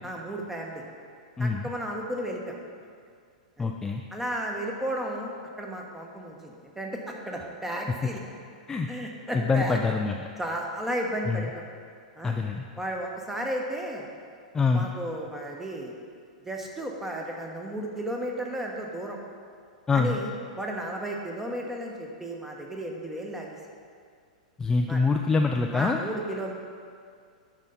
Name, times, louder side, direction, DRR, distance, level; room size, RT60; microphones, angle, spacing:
voice 1, 0.0-0.8 1.4-2.6 3.6-3.7 4.1-5.3 5.6-8.2 8.9-9.8 10.4-11.6 12.1-12.3 12.8-14.1 14.7-15.9 16.4-19.2 19.9-20.3 20.6-23.6 24.9-25.0 25.7-26.5, right 1 dB, 10° right, 0 dB, 1.1 m, -33 dB
voice 2, 1.4-1.7 3.6-4.0 8.7-8.9 9.3-10.2 11.3-11.5 12.2-12.6 14.5-14.9 19.9-20.1 24.6-26.0, left 4 dB, 15° left, 3 dB, 0.4 m, -25 dB
8.8 x 5.5 x 4.1 m, 2.2 s
hypercardioid pair, 100°, 4 cm